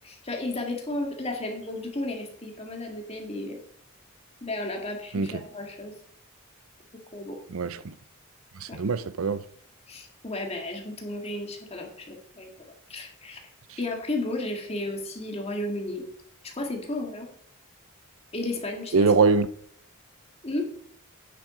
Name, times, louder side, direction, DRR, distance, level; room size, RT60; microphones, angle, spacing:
voice 1, 0.0-3.6 4.4-5.9 7.1-7.4 8.7-8.8 9.9-12.5 12.9-13.4 13.8-16.0 16.4-17.3 18.3-18.9 20.4-20.7, left 2 dB, 30° left, 1.9 m, -33 dB
voice 2, 5.1-5.5 7.5-7.9 8.5-9.4 13.7-13.8 18.9-19.5, right 4 dB, 80° right, 0.6 m, -23 dB
9.4 x 7.5 x 5.0 m
head